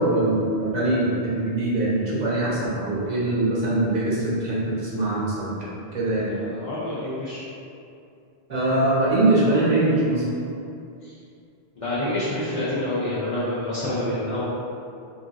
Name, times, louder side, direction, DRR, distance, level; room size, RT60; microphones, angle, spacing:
voice 1, 0.0-5.5 5.9-6.3 8.5-10.2, right 2 dB, 45° right, -7 dB, 0.8 m, -22 dB
voice 2, 6.3-7.4 11.0-11.1 11.8-14.4, left 1 dB, 40° left, -11 dB, 0.6 m, -27 dB
3.8 x 2.5 x 2.2 m, 2.6 s
omnidirectional pair, 1.1 m